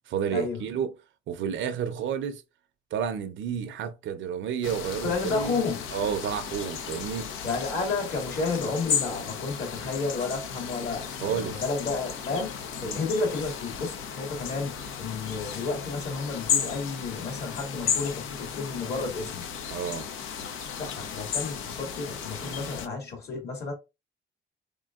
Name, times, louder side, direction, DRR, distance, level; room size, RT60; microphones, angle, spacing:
voice 1, 0.1-1.0 1.3-2.4 2.9-5.6 5.9-7.3 11.2-11.6 12.8-13.0 19.7-20.1 22.4-22.7, right 8 dB, 70° right, 0.6 m, -31 dB
sound 1, 4.6-22.9, left 7 dB, 85° left, 0.6 m, -34 dB
voice 2, 5.0-5.9 7.4-19.5 20.8-23.7, left 3 dB, 55° left, 2.2 m, -31 dB
3.7 x 3.6 x 2.4 m
cardioid pair, 90°, 20 cm